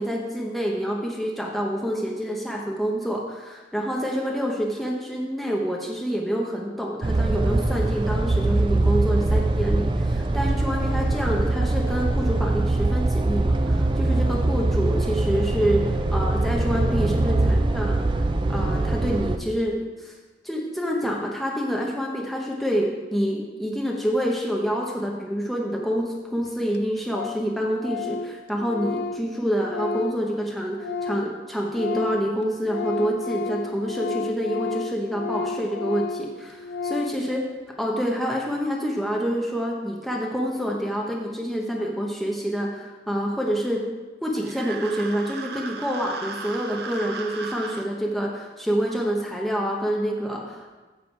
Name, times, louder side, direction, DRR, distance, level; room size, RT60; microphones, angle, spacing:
voice 1, 0.0-18.1 18.5-20.1 20.4-37.5 37.8-43.8 44.2-50.8, equal, ahead, -2 dB, 0.9 m, -27 dB
sound 1, 7.0-19.4, right 2 dB, 25° right, 0.3 m, -23 dB
Organ, 26.1-26.2 26.4-26.5 26.7-26.8 27.1-27.5 27.8-31.4 31.6-37.3, left 4 dB, 70° left, 0.4 m, -32 dB
sound 2, 44.4-47.9, right 4 dB, 65° right, 0.6 m, -36 dB
8.0 x 6.5 x 4.5 m, 1.2 s
head